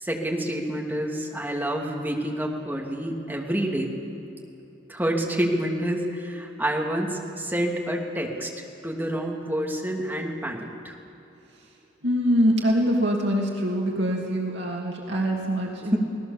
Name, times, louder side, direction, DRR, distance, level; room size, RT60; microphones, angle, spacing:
voice 1, 0.0-3.9 4.9-8.5 8.8-10.9 15.9-16.0, right 1 dB, 10° right, -1 dB, 2.7 m, -28 dB
voice 2, 12.0-16.0, equal, 65° right, -1 dB, 2.6 m, -24 dB
26.0 x 18.5 x 7.3 m, 3.0 s
head